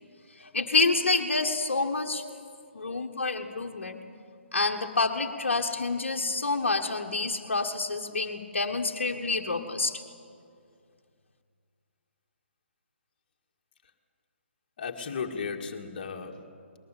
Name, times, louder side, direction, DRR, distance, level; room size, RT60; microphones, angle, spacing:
voice 1, 0.4-2.2 2.7-4.0 4.5-10.0, left 3 dB, 65° left, 1 dB, 1.5 m, -28 dB
voice 2, 14.8-16.8, left 5 dB, 40° left, 3 dB, 2.1 m, -36 dB
20.5 x 20.5 x 8.5 m, 2.3 s
figure-of-eight pair, 140°, 7 cm